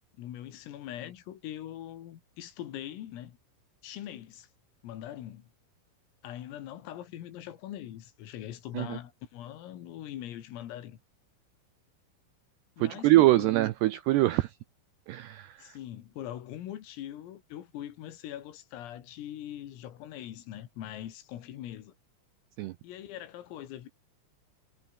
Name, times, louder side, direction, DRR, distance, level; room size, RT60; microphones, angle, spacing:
voice 1, 0.2-3.4 3.8-4.5 4.8-5.5 6.2-11.0 12.8-13.5 14.1-14.2 15.6-21.9 22.8-23.9, left 12 dB, 85° left, 4.9 m, -42 dB
voice 2, 12.8-14.5 15.1-15.7 22.6-22.7, right 16 dB, 80° right, 2.4 m, -24 dB
omnidirectional pair, 5.9 m